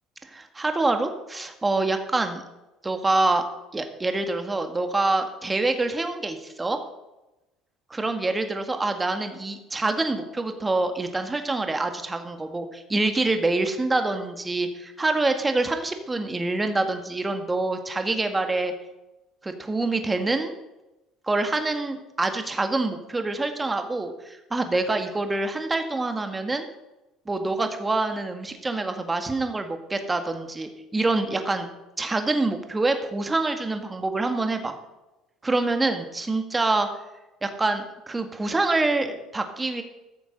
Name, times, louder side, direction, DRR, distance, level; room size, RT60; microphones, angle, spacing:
voice 1, 0.2-2.4 2.8-3.4 3.7-6.8 7.9-18.7 19.4-20.5 21.3-26.7 27.2-31.7 32.0-34.7 35.4-36.9 37.4-39.8, right 2 dB, 20° right, 6 dB, 1.7 m, -26 dB
14.5 x 6.9 x 5.4 m, 0.99 s
supercardioid pair, 90°, 0 cm